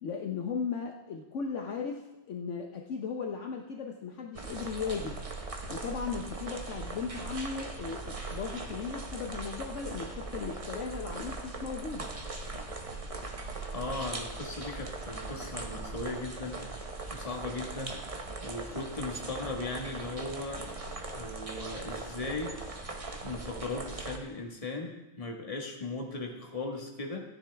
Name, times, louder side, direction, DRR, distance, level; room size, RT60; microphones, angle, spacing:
voice 1, 0.0-5.2 5.7-12.1, left 5 dB, 65° left, 2 dB, 0.7 m, -37 dB
sound 1, 4.3-24.2, right 3 dB, 40° right, 0.5 m, -40 dB
voice 2, 13.7-18.0 18.4-20.6 21.1-22.6 23.2-27.2, left 2 dB, 20° left, 1 dB, 1.3 m, -38 dB
14.5 x 10.0 x 3.4 m, 1.0 s
omnidirectional pair, 2.2 m